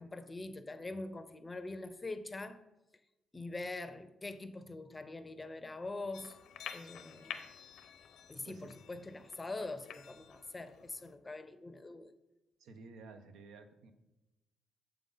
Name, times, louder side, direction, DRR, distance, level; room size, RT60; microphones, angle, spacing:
voice 1, 0.0-2.6 3.3-6.4 6.7-7.5 8.3-12.1, left 2 dB, 20° left, 0.5 m, -43 dB
sound 1, 6.1-11.1, left 8 dB, 75° left, 0.6 m, -50 dB
voice 2, 12.6-13.9, right 4 dB, 85° right, 0.7 m, -53 dB
6.9 x 5.2 x 3.9 m
cardioid pair, 90°, 0 cm